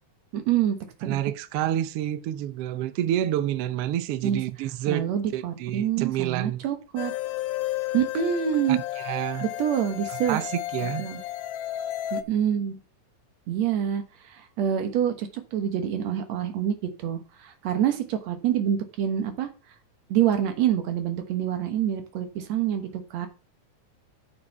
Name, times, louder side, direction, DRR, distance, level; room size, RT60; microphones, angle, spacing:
voice 1, 0.3-0.8 1.0-1.2 4.2-4.4 4.9-7.1 7.9-8.8 9.4-10.4 10.8-11.2 12.1-12.8 13.5-14.0 14.3-19.5 20.1-23.3, right 9 dB, 65° right, 2.3 m, -26 dB
voice 2, 1.0-5.1 5.3-6.6 8.7-9.4 10.3-11.1, right 12 dB, 85° right, 1.3 m, -28 dB
sound 1, 7.0-12.2, left 15 dB, 85° left, 2.3 m, -32 dB
7.3 x 7.1 x 5.9 m
omnidirectional pair, 3.7 m